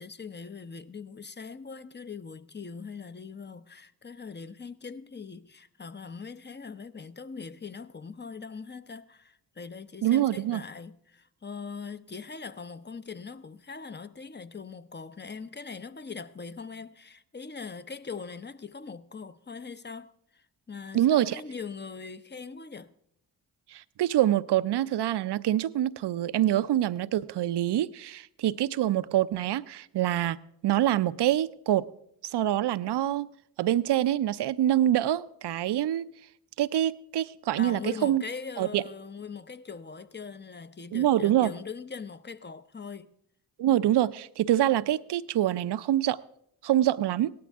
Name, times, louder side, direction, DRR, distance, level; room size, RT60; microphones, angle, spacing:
voice 1, 0.0-22.9 37.5-43.1, left 5 dB, 25° left, 0.8 m, -41 dB
voice 2, 10.0-10.6 20.9-21.4 23.7-30.4 30.6-31.9 32.2-33.3 33.6-36.0 36.6-38.2 38.6-38.8 40.9-41.5 43.6-46.2 46.6-47.3, right 12 dB, 65° right, 0.6 m, -25 dB
17.5 x 12.5 x 3.6 m
supercardioid pair, 50°, 44 cm